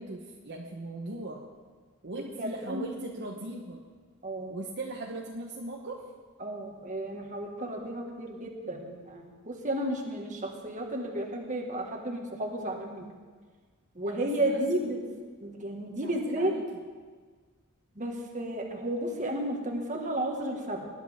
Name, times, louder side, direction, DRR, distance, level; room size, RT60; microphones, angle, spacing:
voice 1, 0.0-1.4 2.0-3.8 4.5-6.0 14.0-14.9 15.9-16.6, right 2 dB, 55° right, -1 dB, 1.1 m, -39 dB
voice 2, 2.4-2.9 4.2-4.5 6.4-13.1 14.0-15.0 15.4-16.5 18.0-20.9, right 1 dB, 35° right, 1 dB, 1.8 m, -33 dB
20.0 x 11.0 x 3.6 m, 1.5 s
head